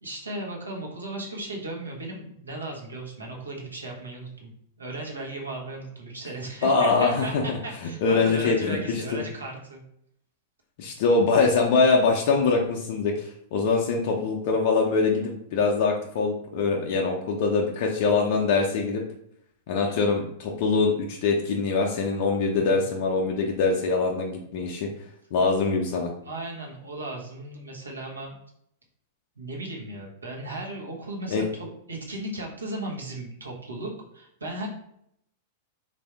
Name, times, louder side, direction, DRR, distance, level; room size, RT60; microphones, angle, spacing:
voice 1, 0.0-4.5 4.8-9.8 19.8-20.0 22.5-22.7 26.2-28.4 29.4-34.7, right 2 dB, 85° right, -2 dB, 1.0 m, -36 dB
voice 2, 6.6-7.4 8.0-9.2 10.8-19.0 19.7-24.9 25.3-26.1 31.3-31.4, left 4 dB, 55° left, 0 dB, 0.5 m, -23 dB
3.4 x 2.6 x 3.4 m, 0.73 s
figure-of-eight pair, 95°, 0 cm